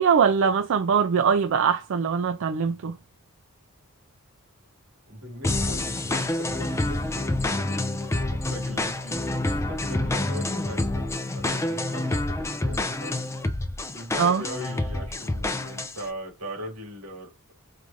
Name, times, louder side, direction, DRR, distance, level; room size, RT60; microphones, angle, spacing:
voice 1, 0.0-3.0 14.2-14.4, right 6 dB, 60° right, 0.4 m, -22 dB
voice 2, 5.1-13.3 13.9-17.5, left 1 dB, 75° right, 2.2 m, -40 dB
sound 1, 5.4-16.1, left 2 dB, 15° left, 0.4 m, -28 dB
4.6 x 2.5 x 2.6 m
head